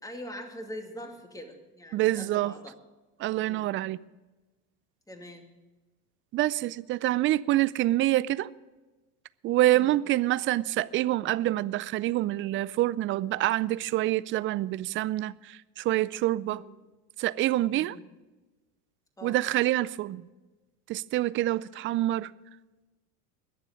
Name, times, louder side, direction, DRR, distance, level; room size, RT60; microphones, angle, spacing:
voice 1, 0.0-2.7 3.4-3.7 5.1-5.5 9.7-10.0 16.4-16.7 17.7-18.0 19.2-19.4, equal, 5° left, 2.4 m, -43 dB
voice 2, 1.9-2.5 3.2-4.0 6.3-8.5 9.4-16.6 17.2-18.0 19.2-20.3 20.9-22.3, right 15 dB, 30° right, 0.4 m, -26 dB
21.5 x 7.2 x 5.1 m
hypercardioid pair, 85°, 46 cm